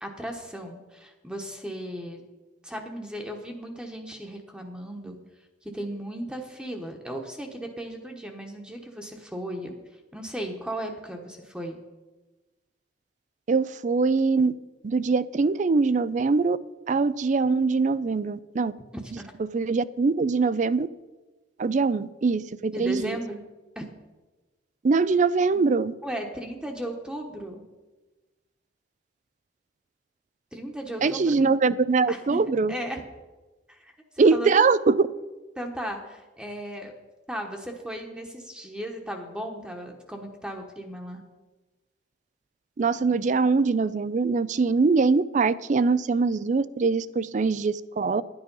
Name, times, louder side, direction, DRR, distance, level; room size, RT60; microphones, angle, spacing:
voice 1, 0.0-2.2 2.6-5.2 5.6-9.7 10.1-11.8 19.2-19.3 22.7-23.4 23.8-23.9 26.0-27.6 30.5-31.4 32.1-33.0 33.7-34.5 35.6-36.9 37.3-41.2, right 1 dB, 5° right, 2 dB, 1.1 m, -36 dB
voice 2, 13.5-14.6 14.8-16.6 16.9-18.7 19.4-20.9 21.6-23.2 24.8-25.9 31.0-32.7 34.2-35.1 42.8-48.2, right 4 dB, 40° right, 17 dB, 0.4 m, -23 dB
11.0 x 9.8 x 5.4 m, 1.2 s
head